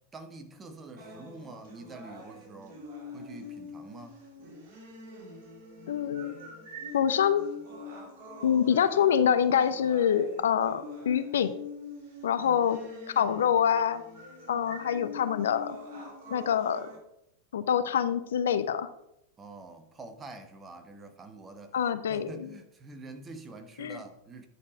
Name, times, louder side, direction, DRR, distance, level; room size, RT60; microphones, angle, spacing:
voice 1, 0.1-2.8 3.1-4.2 19.4-21.7 22.1-24.5, right 3 dB, 20° right, 1.1 m, -46 dB
sound 1, 1.0-17.0, left 3 dB, 50° right, 3.0 m, -45 dB
voice 2, 5.9-6.3 6.9-7.5 8.4-11.5 12.2-12.8 13.2-14.0 14.5-15.8 16.3-16.9 17.5-18.9 21.7-22.5 23.8-24.0, left 8 dB, 65° left, 0.5 m, -25 dB
9.8 x 4.8 x 5.0 m
figure-of-eight pair, 90°, 0 cm